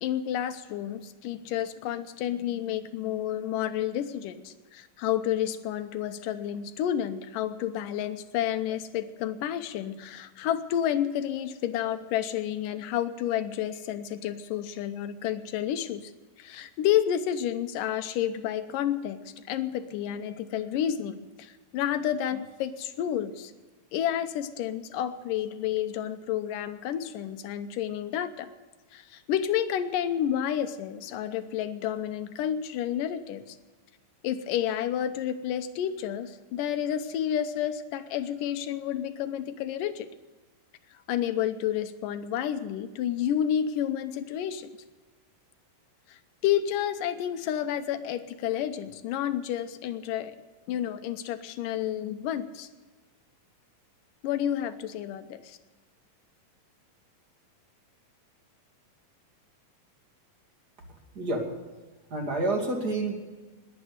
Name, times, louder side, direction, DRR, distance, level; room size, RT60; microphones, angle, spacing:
voice 1, 0.0-16.1 16.4-23.5 23.9-28.5 28.9-33.6 34.2-40.1 41.1-44.7 46.1-50.3 50.7-52.7 54.2-55.6, left 10 dB, 75° left, 10 dB, 2.4 m, -30 dB
voice 2, 61.1-61.5 62.1-63.1, right 2 dB, 30° right, 2 dB, 2.5 m, -28 dB
21.0 x 8.6 x 7.9 m, 1.3 s
omnidirectional pair, 4.1 m